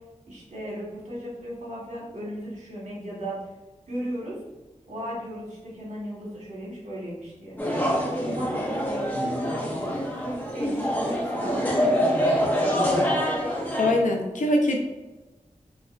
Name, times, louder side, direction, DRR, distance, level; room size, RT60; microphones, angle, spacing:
voice 1, 0.3-3.4 3.9-4.4 4.9-7.6 8.1-9.2 10.1-13.1, right 1 dB, 75° right, -6 dB, 1.5 m, -36 dB
sound 1, 7.6-13.9, equal, 15° left, 0.8 m, -25 dB
voice 2, 13.8-14.8, left 1 dB, 85° left, 2 dB, 0.7 m, -22 dB
4.1 x 3.4 x 2.5 m, 1.1 s
wide cardioid pair, 100°, 13 cm